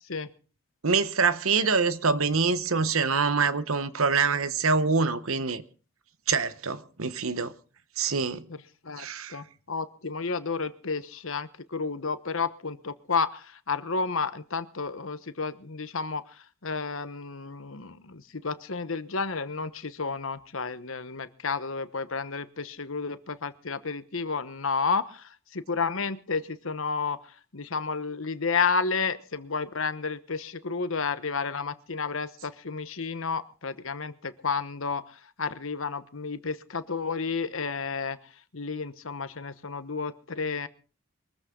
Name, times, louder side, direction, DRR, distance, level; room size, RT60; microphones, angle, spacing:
voice 1, 0.8-5.6 6.3-7.5 8.0-8.4 9.0-9.4, right 4 dB, 70° right, 1.1 m, -25 dB
voice 2, 8.5-27.2 27.5-38.2 38.5-40.7, left 5 dB, 65° left, 1.1 m, -31 dB
23.0 x 14.5 x 3.8 m
head